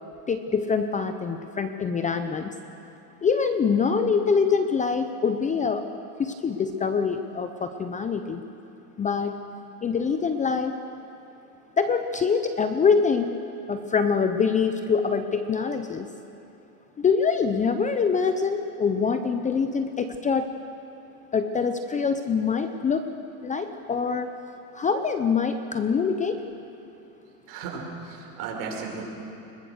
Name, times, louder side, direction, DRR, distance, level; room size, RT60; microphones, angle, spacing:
voice 1, 0.3-2.5 3.2-5.8 6.2-8.4 9.0-9.4 9.8-10.8 11.8-13.3 13.7-16.1 17.0-20.5 21.3-23.1 23.4-24.3 24.7-26.4, left 5 dB, 15° left, 8 dB, 0.7 m, -24 dB
voice 2, 27.5-29.0, right 5 dB, 55° right, 0 dB, 5.6 m, -35 dB
22.0 x 20.0 x 6.6 m, 2.8 s
supercardioid pair, 120°, 45 cm